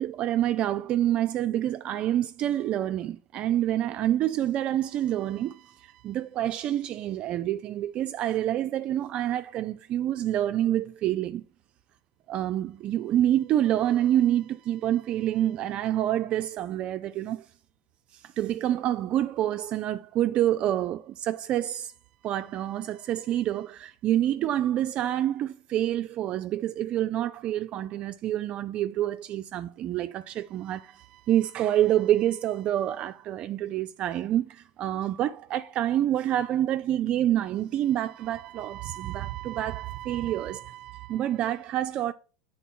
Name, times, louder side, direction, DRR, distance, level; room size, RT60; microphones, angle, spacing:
voice 1, 0.0-11.4 12.3-17.5 18.4-21.9 22.2-42.1, right 12 dB, 40° right, 0.3 m, -27 dB
8.0 x 3.8 x 4.3 m
hypercardioid pair, 100°, 3 cm